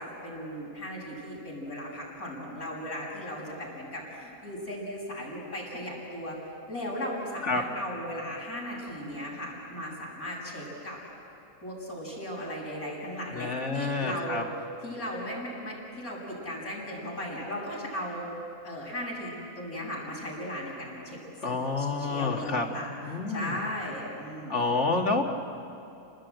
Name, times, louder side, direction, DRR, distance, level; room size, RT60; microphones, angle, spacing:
voice 1, 0.0-6.4 6.7-11.0 11.6-14.4 14.8-18.3 18.6-21.2 21.4-22.9 23.3-24.7, equal, 80° left, -3 dB, 7.2 m, -37 dB
voice 2, 13.3-14.4 21.4-22.7 23.0-23.6 24.5-25.2, left 3 dB, 55° left, 1 dB, 1.9 m, -28 dB
29.5 x 19.5 x 9.1 m, 2.8 s
omnidirectional pair, 1.5 m